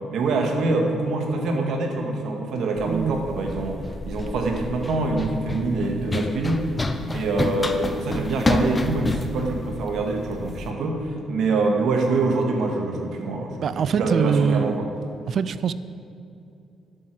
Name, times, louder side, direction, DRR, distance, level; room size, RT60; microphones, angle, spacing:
voice 1, 0.1-3.8 4.1-6.7 7.1-14.9, right 3 dB, 75° right, 2 dB, 1.9 m, -25 dB
Run, 2.8-10.7, left 2 dB, 20° left, 0.8 m, -29 dB
voice 2, 2.9-3.2 13.6-14.8 15.3-15.7, right 7 dB, 55° right, 15 dB, 0.5 m, -23 dB
11.0 x 8.4 x 7.7 m, 2.6 s
cardioid pair, 90°, 0 cm